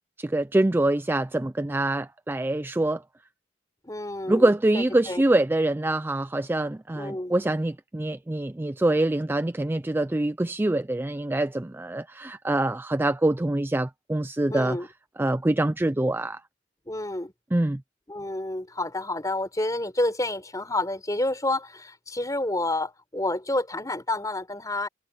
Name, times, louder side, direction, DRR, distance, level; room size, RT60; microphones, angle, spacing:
voice 1, 0.2-3.0 4.3-14.8 15.2-16.4 17.5-17.8, right 1 dB, 10° right, 0.4 m, -25 dB
voice 2, 3.8-5.2 6.9-7.3 14.5-14.9 16.9-17.3 18.1-24.9, left 2 dB, 20° left, 4.3 m, -29 dB
head